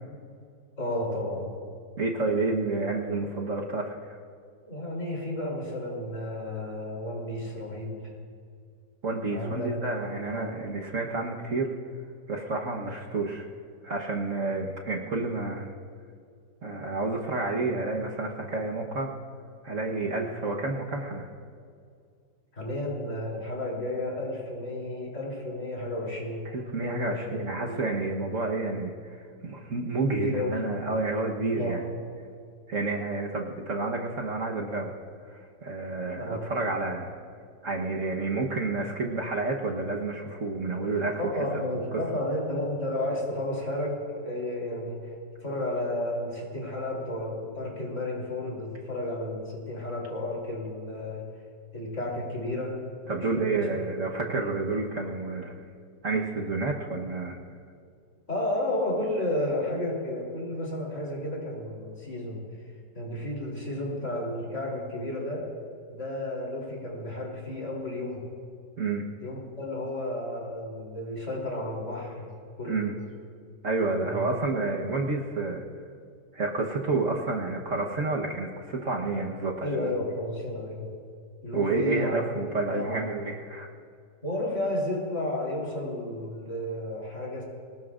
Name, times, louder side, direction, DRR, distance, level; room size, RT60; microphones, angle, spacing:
voice 1, 0.8-1.5 4.7-8.1 9.3-9.7 10.3-10.5 22.5-26.5 26.8-27.8 30.1-30.6 31.5-31.8 36.2-36.4 41.2-45.0 45.4-51.3 51.7-52.8 53.0-53.7 54.1-54.4 58.3-62.4 62.9-65.5 65.9-68.3 69.2-72.3 72.6-72.8 74.0-74.6 79.6-80.9 81.4-82.2 82.5-83.1 84.2-87.4, left 1 dB, 45° left, -2 dB, 3.8 m, -32 dB
voice 2, 2.0-4.2 9.0-11.7 12.3-13.5 13.8-15.7 16.6-19.1 19.6-21.3 26.4-31.8 32.7-34.9 35.3-37.1 37.6-41.2 53.1-55.5 56.0-57.4 68.8-69.0 72.7-72.9 73.6-75.6 76.3-79.9 81.5-83.7, right 3 dB, 50° right, -1 dB, 1.4 m, -30 dB
24.5 x 19.0 x 2.5 m, 2.2 s
omnidirectional pair, 1.8 m